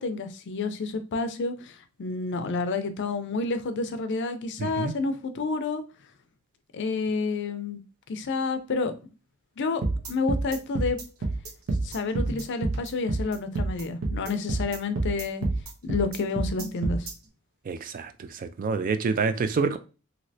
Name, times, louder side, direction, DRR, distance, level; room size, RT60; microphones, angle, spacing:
voice 1, 0.0-5.8 6.7-7.8 8.1-8.9 9.6-9.8 10.1-11.0 11.8-15.4 15.8-17.1, left 3 dB, 55° left, 9 dB, 0.4 m, -29 dB
voice 2, 4.6-4.9 17.7-18.1 18.6-19.8, right 4 dB, 40° right, 10 dB, 0.3 m, -26 dB
sound 1, 9.8-17.1, right 2 dB, 90° right, 0.9 m, -28 dB
3.1 x 2.8 x 2.6 m, 0.33 s
head